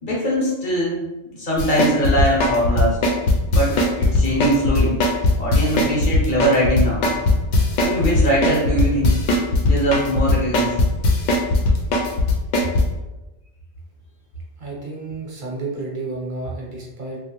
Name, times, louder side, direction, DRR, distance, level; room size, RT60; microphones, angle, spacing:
voice 1, 0.0-1.0 1.3-3.0 3.5-5.0 5.4-7.1 7.8-9.2 9.6-10.9, right 1 dB, 50° left, -5 dB, 1.0 m, -21 dB
sound 1, 1.6-12.8, left 2 dB, 80° left, 0.9 m, -17 dB
voice 2, 14.6-17.2, right 3 dB, 50° right, -4 dB, 0.9 m, -31 dB
3.0 x 2.3 x 2.9 m, 1.1 s
omnidirectional pair, 1.2 m